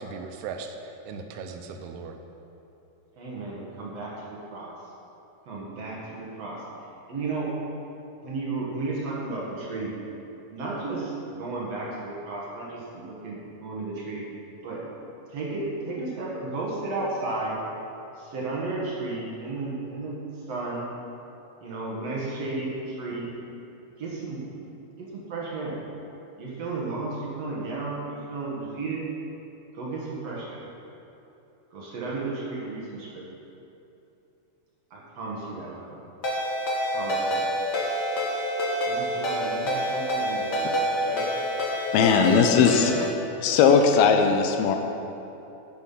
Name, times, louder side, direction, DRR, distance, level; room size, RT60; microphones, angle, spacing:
voice 1, 0.0-2.2, right 5 dB, 90° right, 5 dB, 2.8 m, -38 dB
voice 2, 3.2-4.7 5.5-6.6 7.1-7.6 8.2-10.0 10.5-14.3 14.6-14.8 15.3-17.6 18.2-20.9 21.6-23.3 24.0-24.5 25.0-25.8 26.4-29.0 29.7-30.6 31.7-33.4 34.9-36.0 36.9-37.4 38.9-40.7 41.0-41.2, right 3 dB, 50° right, -5 dB, 2.5 m, -33 dB
Ringtone, 36.2-43.1, equal, 50° left, 1.3 m, -27 dB
voice 3, 41.9-43.1 43.4-44.8, left 6 dB, 80° left, 5 dB, 2.6 m, -19 dB
10.5 x 9.1 x 5.8 m, 2.9 s
omnidirectional pair, 4.5 m